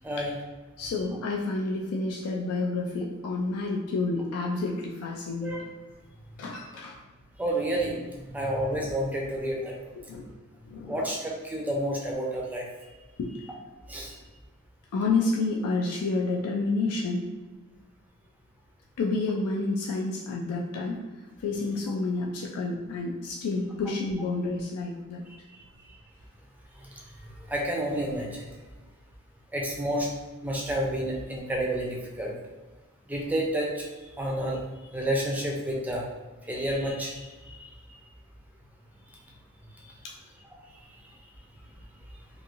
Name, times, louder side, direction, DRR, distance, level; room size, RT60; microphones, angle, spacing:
voice 1, 0.8-5.5 6.4-7.0 10.0-10.2 10.7-11.0 13.2-13.3 14.9-17.3 19.0-21.0 21.4-25.2, left 3 dB, 80° left, -1 dB, 0.4 m, -29 dB
voice 2, 7.4-8.0 8.3-9.7 10.9-12.7 13.9-14.1 27.5-28.4 29.5-30.1 30.4-32.3 33.1-33.8 34.2-34.6 34.9-36.0 36.5-37.1 37.6-37.7, right 1 dB, 5° right, -2 dB, 0.4 m, -29 dB
3.0 x 2.6 x 2.5 m, 1.3 s
head